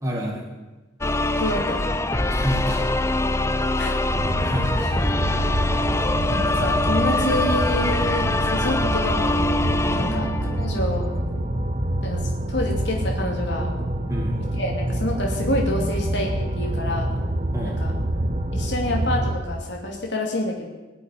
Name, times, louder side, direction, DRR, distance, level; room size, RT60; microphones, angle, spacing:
voice 1, 0.0-0.4 2.4-2.8 4.4-5.0 10.0-10.2 14.1-14.4 17.5-17.8, equal, 15° right, -2 dB, 1.9 m, -29 dB
sound 1, 1.0-11.0, left 2 dB, 15° left, 0.6 m, -24 dB
voice 2, 1.3-1.9 3.8-3.9 6.3-9.7 9.9-10.3 10.6-11.0 12.0-12.2 12.5-13.7 14.4-17.1 17.6-17.9 18.5-20.7, left 1 dB, 65° left, 0 dB, 2.6 m, -27 dB
sound 2, 4.1-19.4, right 1 dB, 35° right, 1.2 m, -26 dB
20.0 x 7.1 x 9.8 m, 1.1 s
head